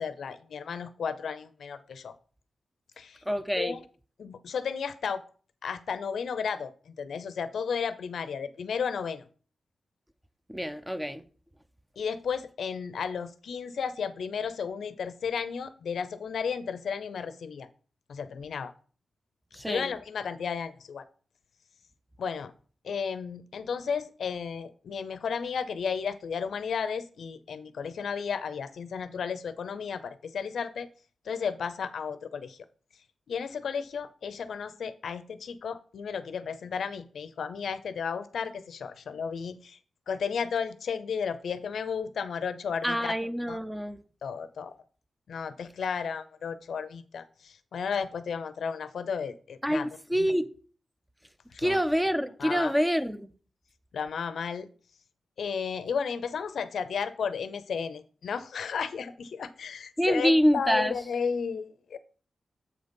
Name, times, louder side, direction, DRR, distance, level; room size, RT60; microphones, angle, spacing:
voice 1, 0.0-2.1 3.0-3.2 3.6-3.8 4.2-5.2 5.6-9.2 12.0-17.7 18.1-18.7 19.7-21.0 22.2-22.5 22.8-30.9 31.2-32.6 33.3-39.8 40.1-43.1 43.5-43.6 44.2-44.7 45.3-49.9 50.2-50.3 51.5-51.8 52.4-52.7 53.9-54.7 55.4-62.0, left 6 dB, 85° left, 0.5 m, -33 dB
voice 2, 3.3-3.8 10.5-11.2 19.5-19.9 42.8-44.0 49.6-50.5 51.6-53.3 60.0-60.9, equal, 5° right, 0.4 m, -26 dB
7.5 x 3.9 x 5.2 m
wide cardioid pair, 130°, 0 cm